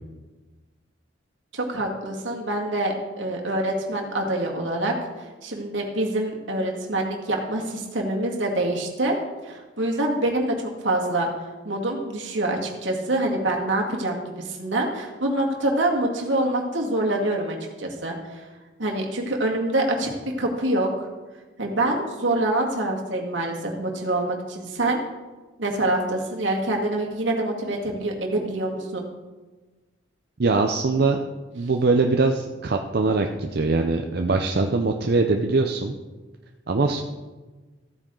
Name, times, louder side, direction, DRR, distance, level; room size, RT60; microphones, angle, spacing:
voice 1, 1.5-4.9 5.4-9.2 9.4-11.3 11.6-18.4 18.8-20.1 20.4-21.1 21.6-25.0 25.6-29.1, right 1 dB, 75° right, 0 dB, 2.1 m, -25 dB
voice 2, 30.4-31.2 31.5-35.9 36.7-37.0, right 3 dB, 55° right, 4 dB, 0.6 m, -22 dB
14.0 x 8.9 x 3.8 m, 1.3 s
head